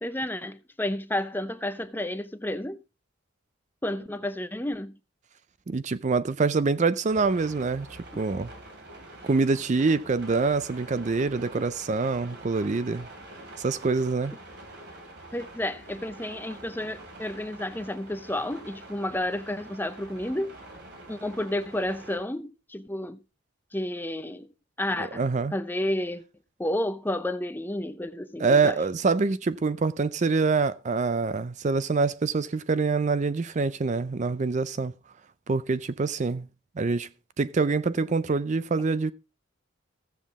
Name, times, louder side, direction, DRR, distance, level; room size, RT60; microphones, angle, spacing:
voice 1, 0.0-2.8 3.8-5.0 8.1-8.2 15.3-20.6 21.1-23.2 23.7-24.5 24.8-25.2 25.5-26.2 26.6-28.8, left 1 dB, 10° left, 0.6 m, -31 dB
voice 2, 5.7-7.9 8.2-8.5 9.2-13.1 13.6-14.3 25.0-25.5 28.4-34.9 35.5-36.5 36.8-37.1 37.4-39.1, right 4 dB, 40° right, 0.4 m, -25 dB
sound 1, 7.1-22.2, right 2 dB, 60° right, 3.1 m, -46 dB
15.5 x 7.3 x 3.6 m
head